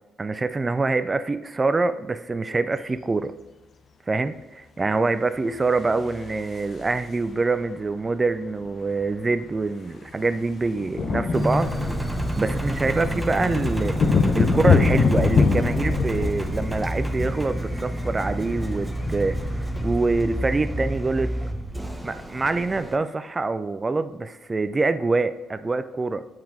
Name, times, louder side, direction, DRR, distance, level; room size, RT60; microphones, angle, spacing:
voice 1, 0.2-3.3 4.1-11.8 12.0-12.1 12.4-14.0 14.3-21.3 22.0-26.2, right 3 dB, 30° right, 12 dB, 0.4 m, -25 dB
sound 1, 5.8-7.3 8.6-8.7 8.9-9.2 9.4-21.5, left 5 dB, 50° left, 0.7 m, -26 dB
Engine, 11.3-23.0, right 1 dB, 10° right, 0.9 m, -29 dB
7.5 x 4.6 x 3.7 m, 1.1 s
hypercardioid pair, 45°, 0 cm